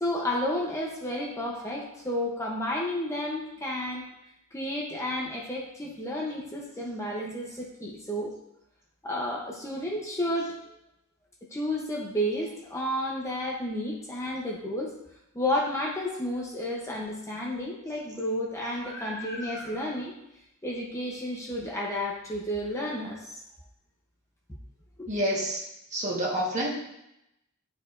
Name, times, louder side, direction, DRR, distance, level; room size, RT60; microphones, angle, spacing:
voice 1, 0.0-4.0 4.5-8.3 9.0-10.8 11.5-14.9 15.3-20.1 20.6-23.4 25.0-25.1, left 1 dB, 15° left, -3 dB, 0.9 m, -31 dB
voice 2, 25.0-26.7, right 1 dB, 35° right, -4 dB, 1.6 m, -29 dB
10.5 x 4.6 x 2.7 m, 0.84 s
head